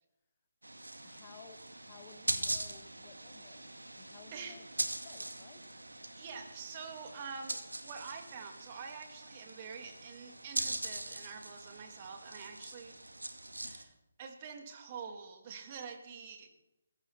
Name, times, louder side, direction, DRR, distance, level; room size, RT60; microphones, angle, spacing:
sound 1, 0.6-13.8, right 1 dB, 75° right, 2.2 m, -41 dB
voice 1, 1.0-5.7, left 7 dB, 25° left, 8 dB, 1.5 m, -57 dB
voice 2, 6.2-13.0 13.5-13.9 14.2-16.6, right 6 dB, 30° right, 5 dB, 3.0 m, -46 dB
19.5 x 16.5 x 4.5 m, 0.88 s
figure-of-eight pair, 145°, 0 cm